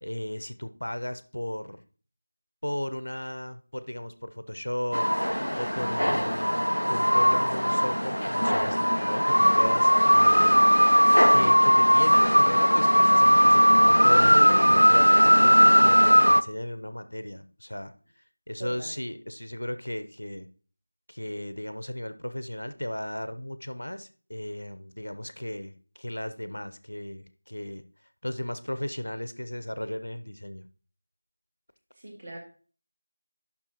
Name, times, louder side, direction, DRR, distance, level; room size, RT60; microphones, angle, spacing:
voice 1, 0.0-1.8 2.6-5.1 5.5-10.6 11.3-17.9 18.5-20.5 21.1-27.8 28.2-30.7, left 1 dB, 65° left, 11 dB, 0.8 m, -35 dB
sound 1, 4.9-16.4, equal, 85° left, 0.4 m, -19 dB
voice 2, 18.6-19.0 31.9-32.4, right 1 dB, 30° right, 0 dB, 2.0 m, -41 dB
9.6 x 6.0 x 2.9 m, 0.39 s
figure-of-eight pair, 170°, 0 cm